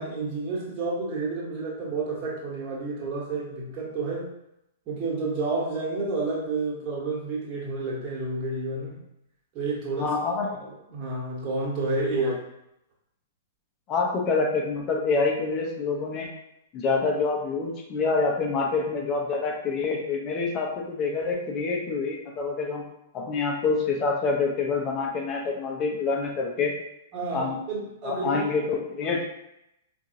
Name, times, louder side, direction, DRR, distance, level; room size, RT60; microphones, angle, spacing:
voice 1, 0.0-4.3 4.9-9.0 9.5-12.4 27.1-28.5, right 3 dB, 35° right, -4 dB, 1.2 m, -30 dB
voice 2, 10.0-10.5 12.2-12.3 13.9-16.3 16.7-22.8 23.1-26.7 27.3-27.6 28.0-29.3, left 4 dB, 30° left, 1 dB, 0.7 m, -26 dB
4.6 x 2.5 x 2.7 m, 0.83 s
figure-of-eight pair, 105°, 0 cm